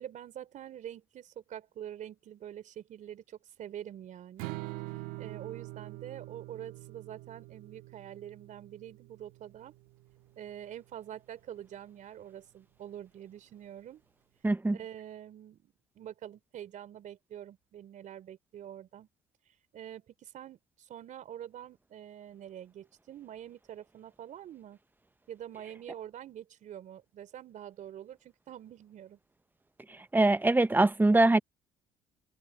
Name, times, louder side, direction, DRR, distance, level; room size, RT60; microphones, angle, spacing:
voice 1, 0.0-4.6 5.2-9.7 10.4-14.0 14.7-19.1 19.7-24.8 25.3-29.2, right 10 dB, 60° right, 3.7 m, -46 dB
Strum, 4.4-10.7, right 20 dB, 80° right, 1.9 m, -45 dB
voice 2, 14.4-14.8 30.1-31.4, right 2 dB, 15° right, 0.9 m, -23 dB
supercardioid pair, 65°, 15 cm